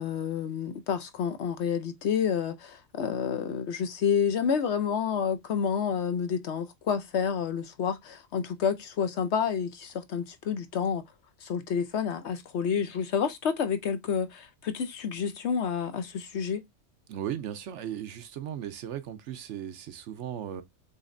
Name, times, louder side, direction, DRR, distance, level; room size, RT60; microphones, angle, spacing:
voice 1, 0.0-11.0 11.4-16.6, left 7 dB, 60° left, 0.9 m, -29 dB
voice 2, 17.1-20.6, right 10 dB, 65° right, 0.9 m, -36 dB
6.4 x 3.1 x 2.5 m
omnidirectional pair, 1.4 m